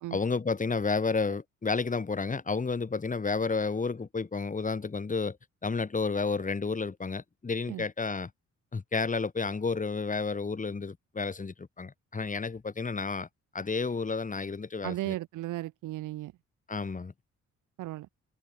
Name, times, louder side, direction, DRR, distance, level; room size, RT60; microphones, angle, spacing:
voice 1, 0.1-5.4 5.6-8.3 8.7-13.3 13.5-15.1 16.7-17.1, left 4 dB, 25° left, 2.2 m, -31 dB
voice 2, 14.8-16.3 17.8-18.1, right 16 dB, 90° right, 2.1 m, -35 dB
cardioid pair, 90°, 30 cm